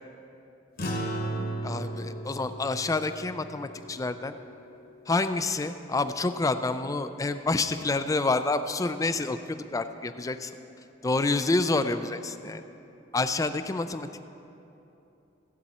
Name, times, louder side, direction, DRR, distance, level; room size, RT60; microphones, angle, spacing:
sound 1, 0.8-5.4, right 1 dB, 50° left, 1.2 m, -36 dB
voice 1, 1.6-4.4 5.1-10.5 11.0-12.6 13.1-14.2, left 3 dB, 15° left, 10 dB, 0.3 m, -28 dB
16.0 x 8.3 x 4.2 m, 2.9 s
head